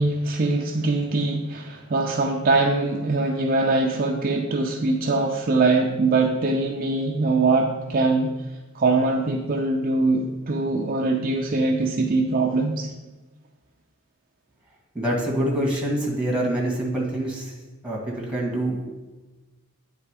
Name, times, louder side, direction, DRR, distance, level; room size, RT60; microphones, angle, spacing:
voice 1, 0.0-8.3 8.7-12.9, right 3 dB, 45° right, 1 dB, 0.5 m, -22 dB
voice 2, 14.9-17.5 17.8-18.8, right 1 dB, 5° right, -2 dB, 1.7 m, -25 dB
9.2 x 3.4 x 4.7 m, 1.1 s
head